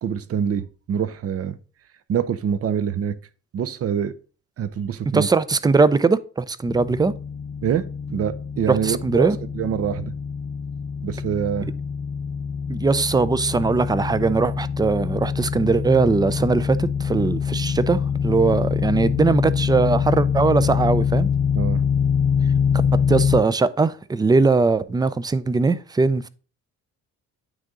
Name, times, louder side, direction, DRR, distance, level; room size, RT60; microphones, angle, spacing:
voice 1, 0.0-1.6 2.1-3.2 3.5-4.1 4.6-5.3 7.6-9.3 9.5-10.1 11.0-11.7 21.5-21.8, right 8 dB, 50° right, 0.6 m, -25 dB
voice 2, 5.1-7.1 8.7-9.4 12.7-21.3 23.1-26.3, right 4 dB, 15° right, 0.4 m, -20 dB
sound 1, 6.7-23.4, left 7 dB, 30° left, 0.8 m, -24 dB
9.2 x 3.7 x 3.8 m
cardioid pair, 90°, 30 cm